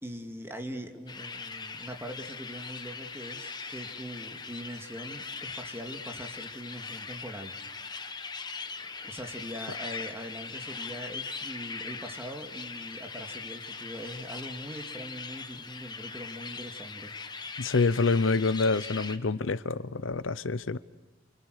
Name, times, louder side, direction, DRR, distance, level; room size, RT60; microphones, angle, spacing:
voice 1, 0.0-7.6 9.0-17.2, equal, 15° right, 2.4 m, -42 dB
sound 1, 1.1-19.2, left 4 dB, 20° left, 1.2 m, -40 dB
voice 2, 17.6-20.8, left 3 dB, 80° left, 0.8 m, -27 dB
28.5 x 25.0 x 6.6 m
head